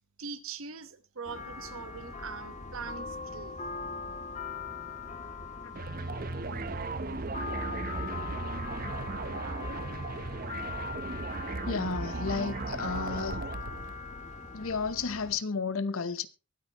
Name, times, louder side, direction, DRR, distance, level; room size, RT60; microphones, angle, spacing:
voice 1, 0.2-3.6, right 5 dB, 80° right, 1.1 m, -42 dB
sound 1, 1.2-15.3, left 4 dB, 35° left, 2.4 m, -41 dB
sound 2, 5.8-14.0, right 3 dB, 40° right, 0.8 m, -36 dB
voice 2, 11.6-13.5 14.5-16.3, left 5 dB, 80° left, 0.9 m, -32 dB
23.0 x 8.8 x 3.0 m
head